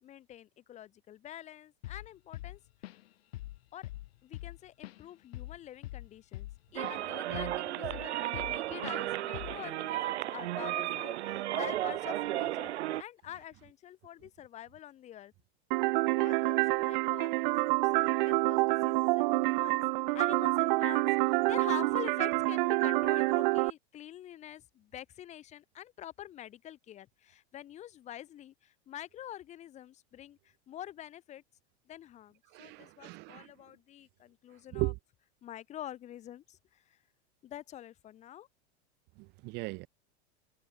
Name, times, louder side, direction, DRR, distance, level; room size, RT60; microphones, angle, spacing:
voice 1, 0.0-2.6 3.7-3.9 4.2-15.3 16.2-17.9 18.2-19.8 20.1-31.4 31.9-34.9 35.4-37.0 37.4-38.5, left 12 dB, 20° left, 2.3 m, -46 dB
Drum kit / Drum, 1.8-2.1 2.3-3.1 3.3-3.6 3.8-7.0 7.3-8.6 8.8-9.0 9.3-9.7, left 17 dB, 65° left, 4.5 m, -43 dB
sound 1, 6.8-13.0, right 14 dB, 85° right, 4.3 m, -34 dB
sound 2, 15.7-23.7, right 23 dB, 45° right, 1.1 m, -27 dB
voice 2, 32.5-33.5 34.7-35.0 39.2-39.9, right 25 dB, 30° right, 1.3 m, -37 dB
supercardioid pair, 175°, 33 cm